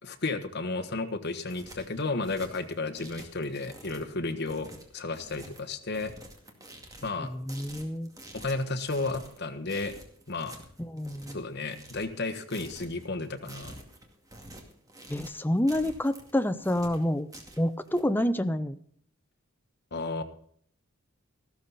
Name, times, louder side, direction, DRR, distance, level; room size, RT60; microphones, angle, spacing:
voice 1, 0.0-6.1 7.0-7.3 8.3-9.9 10.3-10.5 11.3-13.7 19.9-20.2, left 3 dB, 50° left, 7 dB, 1.4 m, -33 dB
sound 1, 1.2-18.0, right 1 dB, 15° right, 2.2 m, -49 dB
voice 2, 7.3-8.1 10.8-11.4 15.1-17.3 17.6-18.8, left 1 dB, 10° left, 10 dB, 0.7 m, -28 dB
14.5 x 13.0 x 4.1 m, 0.62 s
head